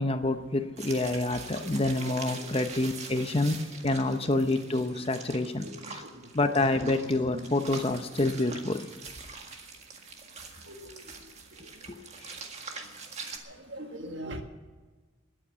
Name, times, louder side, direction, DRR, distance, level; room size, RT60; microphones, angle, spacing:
voice 1, 0.0-6.0 6.3-8.9 11.9-12.4, left 2 dB, 30° left, 8 dB, 0.7 m, -28 dB
sound 1, 0.8-13.4, right 4 dB, 35° right, 1.8 m, -44 dB
voice 2, 1.6-2.1 2.3-2.4 3.3-3.4 4.0-4.1 5.6-5.9 6.8-6.9 7.3-7.4 10.7-10.9 13.7-14.4, right 1 dB, 60° right, 5 dB, 1.8 m, -41 dB
21.5 x 8.8 x 6.9 m, 1.3 s
head